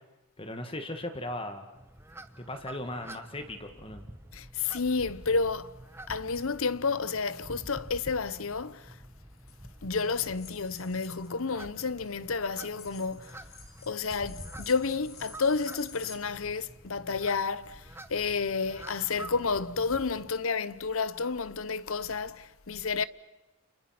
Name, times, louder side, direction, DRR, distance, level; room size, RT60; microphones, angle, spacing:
voice 1, 0.4-1.7 2.4-4.0, left 1 dB, 25° left, 1.9 m, -37 dB
sound 1, 1.7-20.3, right 1 dB, 10° right, 1.1 m, -48 dB
voice 2, 4.3-5.8 6.1-9.0 9.8-13.4 13.9-23.0, left 4 dB, 75° left, 0.9 m, -31 dB
sound 2, 9.4-9.5 10.3-11.3 12.7-16.1, left 6 dB, 45° left, 4.6 m, -50 dB
30.0 x 29.0 x 6.0 m
head